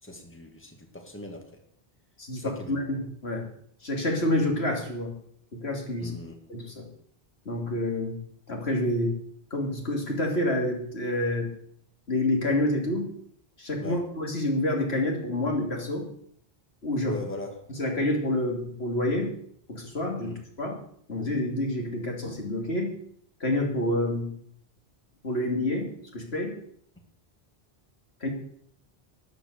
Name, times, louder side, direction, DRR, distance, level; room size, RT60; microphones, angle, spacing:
voice 1, 0.0-1.4 2.4-2.8 6.0-6.3 13.8-14.0 17.0-17.5 20.2-20.4, left 1 dB, 10° left, 3 dB, 2.0 m, -39 dB
voice 2, 2.2-3.5 3.8-5.1 5.5-6.1 6.5-6.8 7.4-8.2 8.5-9.2 9.5-11.5 12.1-13.1 13.6-16.1 16.8-17.2 17.7-19.3 19.7-20.8 21.1-22.9 23.4-24.3 25.2-26.6 28.2-28.3, left 1 dB, 90° left, 1 dB, 3.2 m, -28 dB
12.5 x 9.5 x 6.8 m, 0.65 s
omnidirectional pair, 1.1 m